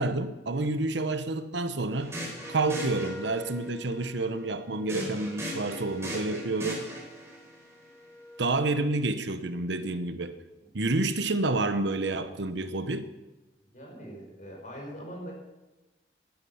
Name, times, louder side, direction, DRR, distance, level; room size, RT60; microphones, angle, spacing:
voice 1, 0.0-2.2 2.5-6.9 8.4-10.3 10.7-13.1, right 2 dB, 75° right, 1.0 m, -29 dB
sound 1, 1.9-3.6 4.9-7.4, equal, 15° right, 4.4 m, -38 dB
Wind instrument woodwind instrument, 2.4-9.0, left 2 dB, 5° left, 0.8 m, -45 dB
voice 2, 13.7-15.3, equal, 45° left, 5.3 m, -42 dB
16.0 x 12.0 x 5.8 m
head